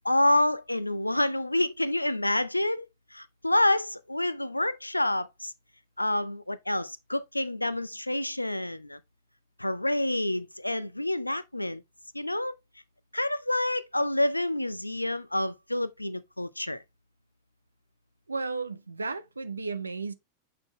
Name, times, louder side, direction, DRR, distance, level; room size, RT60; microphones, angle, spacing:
voice 1, 0.0-2.9 3.1-5.5 6.0-9.0 9.6-11.8 12.1-12.5 13.1-16.8, left 1 dB, 85° left, 0.4 m, -28 dB
voice 2, 18.3-20.1, right 4 dB, 80° right, 0.6 m, -34 dB
7.5 x 4.4 x 3.1 m
figure-of-eight pair, 90°, 0 cm